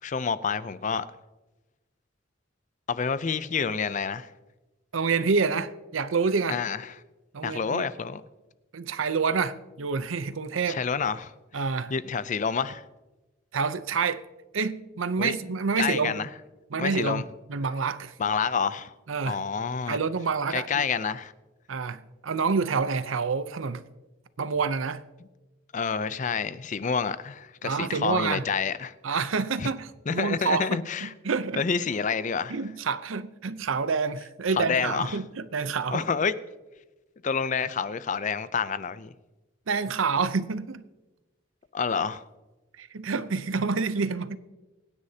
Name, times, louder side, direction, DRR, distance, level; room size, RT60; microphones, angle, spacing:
voice 1, 0.0-1.1 2.9-4.3 6.5-6.9 7.4-8.2 10.7-11.3 11.9-12.8 15.2-15.3 15.8-16.3 16.8-17.2 18.2-18.9 19.3-20.0 20.5-21.3 25.7-29.2 29.6-29.7 30.1-31.1 31.6-32.6 34.6-35.2 35.9-36.3 37.2-39.1 41.7-42.2, left 5 dB, 40° left, 0.5 m, -28 dB
voice 2, 4.9-6.6 7.3-7.8 8.7-10.8 11.5-11.9 13.5-14.2 14.5-16.2 16.7-17.2 17.5-18.1 19.1-19.4 19.9-20.8 21.7-23.8 24.4-25.0 27.6-28.4 29.0-31.6 32.5-36.1 39.7-40.8 42.8-44.4, right 5 dB, 85° right, 0.7 m, -28 dB
25.0 x 9.7 x 2.8 m
head